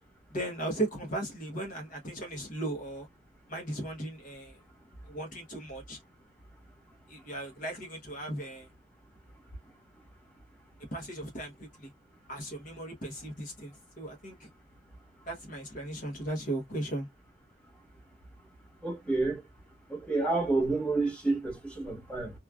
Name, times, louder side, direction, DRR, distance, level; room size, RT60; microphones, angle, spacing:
voice 1, 0.3-3.1 3.5-4.6 5.1-6.0 7.1-8.7 10.9-11.9 12.3-14.5 15.3-17.1, right 1 dB, 45° left, 0.9 m, -37 dB
voice 2, 18.8-19.4 19.9-22.3, right 3 dB, 5° left, 1.4 m, -29 dB
3.0 x 2.3 x 2.3 m
head